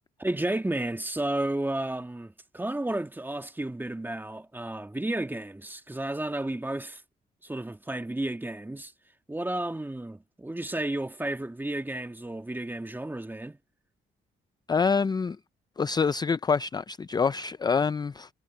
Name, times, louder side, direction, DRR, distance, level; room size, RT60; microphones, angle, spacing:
voice 1, 0.2-7.0 7.4-8.9 9.3-13.6, right 1 dB, 10° right, 1.8 m, -32 dB
voice 2, 14.7-15.4 15.8-18.3, left 5 dB, 20° left, 0.4 m, -26 dB
cardioid pair, 90°, 20 cm